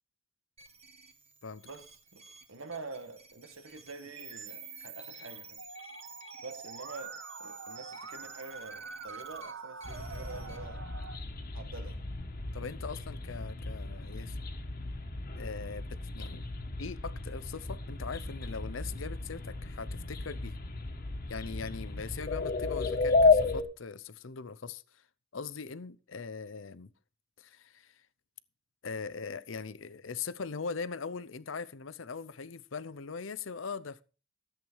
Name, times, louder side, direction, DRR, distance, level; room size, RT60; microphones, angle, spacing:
sound 1, 0.6-10.6, right 5 dB, 30° right, 1.7 m, -51 dB
voice 1, 1.6-2.2 2.5-5.6 6.4-10.9 11.5-12.0, right 3 dB, 80° right, 1.8 m, -46 dB
Musical instrument, 5.6-11.1, right 4 dB, 65° right, 1.3 m, -45 dB
sound 2, 9.8-23.6, left 3 dB, 45° left, 1.5 m, -33 dB
voice 2, 12.5-14.4 15.3-16.4 16.8-20.6 21.3-25.0 25.3-26.9 27.4-28.0 28.8-34.0, left 5 dB, 70° left, 0.7 m, -41 dB
14.0 x 8.0 x 4.7 m
head